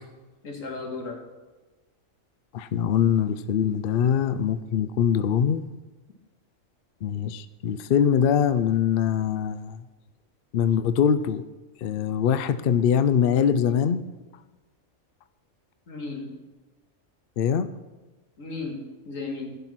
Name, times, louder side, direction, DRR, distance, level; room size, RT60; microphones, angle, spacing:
voice 1, 0.4-1.2 15.9-16.3 18.4-19.6, left 3 dB, 80° left, 1 dB, 2.3 m, -35 dB
voice 2, 2.5-5.6 7.0-9.8 10.5-11.4 11.8-14.0 17.4-17.7, left 8 dB, 60° left, 13 dB, 0.6 m, -23 dB
15.0 x 5.7 x 6.1 m, 1.2 s
omnidirectional pair, 1.3 m